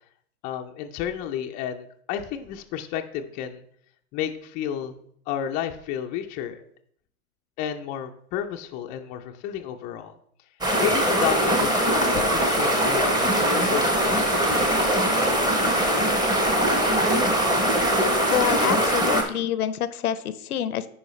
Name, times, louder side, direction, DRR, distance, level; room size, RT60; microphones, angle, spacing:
voice 1, 0.4-3.6 4.1-5.0 5.3-6.6 7.6-10.1 10.8-16.1, left 9 dB, 20° left, 4 dB, 0.4 m, -32 dB
sound 1, 10.6-19.2, right 1 dB, 10° right, 0.8 m, -21 dB
voice 2, 18.3-20.9, left 10 dB, 75° left, 15 dB, 0.6 m, -27 dB
9.6 x 4.8 x 3.1 m, 0.65 s
hypercardioid pair, 105°, 45 cm